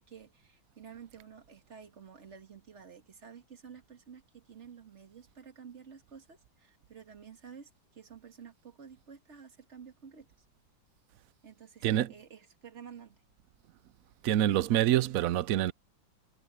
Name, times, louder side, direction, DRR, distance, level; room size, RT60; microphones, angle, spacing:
voice 1, 0.0-10.3 11.4-13.2, right 7 dB, 35° right, 1.8 m, -51 dB
voice 2, 11.8-12.1 14.2-15.7, right 12 dB, 85° right, 0.7 m, -26 dB
omnidirectional pair, 2.1 m